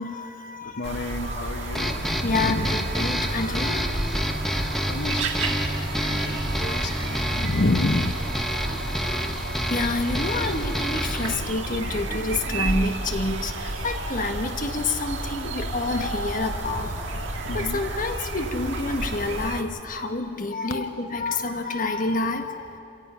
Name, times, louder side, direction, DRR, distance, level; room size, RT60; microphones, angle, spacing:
voice 1, 0.0-0.9 1.2-1.5 1.8-4.0 9.7-22.7, left 2 dB, 45° left, 5 dB, 1.4 m, -28 dB
voice 2, 0.6-2.8 4.9-5.5 6.0-8.5 10.4-10.6 16.7-17.8, left 2 dB, 65° left, 6 dB, 0.9 m, -30 dB
sound 1, 0.8-19.6, right 2 dB, 80° right, 1.9 m, -31 dB
sound 2, 1.7-11.3, equal, ahead, 1.1 m, -29 dB
Wind instrument woodwind instrument, 7.3-9.4 9.7-10.8 11.0-13.2, equal, 25° left, 4.5 m, -44 dB
29.0 x 17.5 x 5.7 m, 2.8 s
head